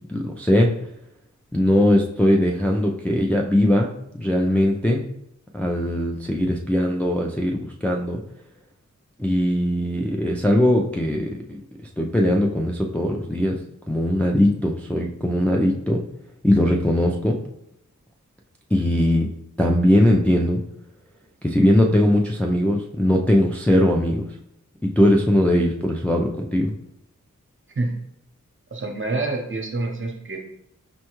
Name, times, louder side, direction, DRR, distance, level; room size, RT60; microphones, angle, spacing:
voice 1, 0.1-0.7 1.5-3.9 4.2-5.0 5.5-8.2 9.2-11.6 12.0-13.6 13.9-16.0 16.4-17.4 18.7-19.3 19.6-20.6 21.4-24.3 24.8-26.7, left 1 dB, 5° left, 0 dB, 0.4 m, -20 dB
voice 2, 28.7-30.4, right 2 dB, 40° right, 2 dB, 0.8 m, -27 dB
5.3 x 2.3 x 3.0 m, 0.75 s
wide cardioid pair, 55°, 31 cm